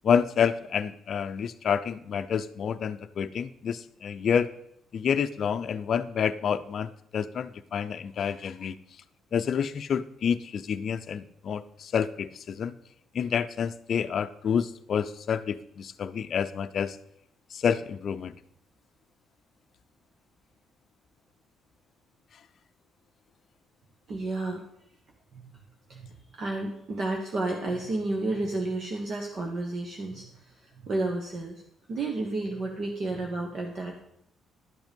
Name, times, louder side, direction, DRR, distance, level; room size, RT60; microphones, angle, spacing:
voice 1, 0.0-4.5 4.9-8.8 9.3-12.7 13.1-17.0 17.5-18.3, left 7 dB, 50° left, 12 dB, 0.6 m, -28 dB
voice 2, 24.1-24.6 25.3-25.5 25.9-31.6 31.9-34.0, right 2 dB, 45° right, 1 dB, 1.3 m, -31 dB
11.5 x 8.0 x 5.3 m, 0.73 s
cardioid pair, 145°, 0 cm